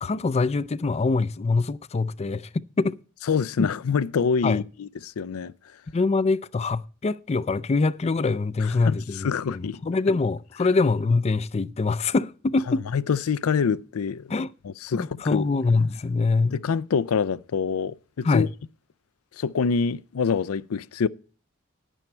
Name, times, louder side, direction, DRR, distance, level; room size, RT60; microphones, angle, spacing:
voice 1, 0.0-3.0 3.6-3.7 4.4-4.6 5.9-12.8 14.3-14.5 14.9-16.6 18.2-18.5, left 3 dB, 30° left, 0.4 m, -24 dB
voice 2, 3.3-5.5 8.6-9.8 12.7-14.3 14.6-15.4 16.5-18.5 19.4-21.1, left 6 dB, 90° left, 0.4 m, -26 dB
11.0 x 9.1 x 4.4 m
head